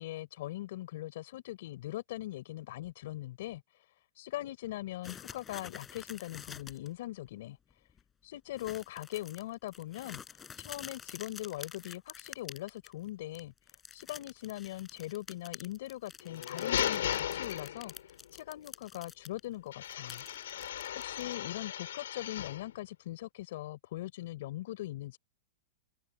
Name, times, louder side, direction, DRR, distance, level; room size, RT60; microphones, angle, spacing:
voice 1, 0.0-7.9 8.2-20.2 20.9-25.2, left 15 dB, 60° left, 5.1 m, -41 dB
sound 1, 5.0-6.9 7.3-7.4 7.7-8.0 8.6-13.1 13.3-19.4 19.7-21.3, left 7 dB, 15° left, 5.0 m, -48 dB
sound 2, 16.2-18.2 19.7-22.7, left 11 dB, 80° left, 3.4 m, -36 dB
supercardioid pair, 150°, 0 cm